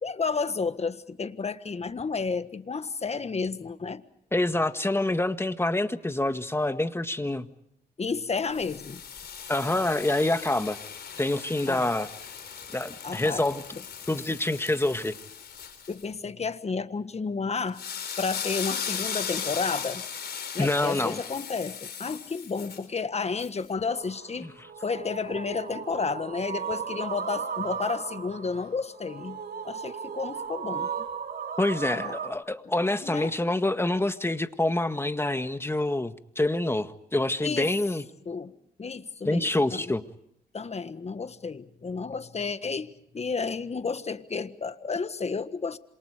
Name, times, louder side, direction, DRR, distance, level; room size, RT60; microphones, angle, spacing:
voice 1, 0.0-4.0 8.0-9.0 11.7-11.9 13.0-13.4 15.9-17.8 18.2-20.1 20.5-24.5 24.8-29.4 29.6-30.9 31.9-32.1 33.0-33.3 37.4-37.7 38.2-38.5 38.8-39.9 40.5-45.8, left 4 dB, 35° left, 1.5 m, -31 dB
voice 2, 4.3-7.5 9.5-10.8 11.2-12.1 12.7-13.6 14.1-15.2 20.6-21.2 24.4-24.5 31.6-38.1 39.2-40.0, left 2 dB, 15° left, 1.7 m, -26 dB
sound 1, 8.5-16.0 17.7-22.9 23.4-23.5, left 7 dB, 70° left, 4.5 m, -37 dB
sound 2, 23.9-32.3, right 7 dB, 60° right, 3.9 m, -36 dB
27.5 x 27.0 x 5.1 m
cardioid pair, 70°, 18 cm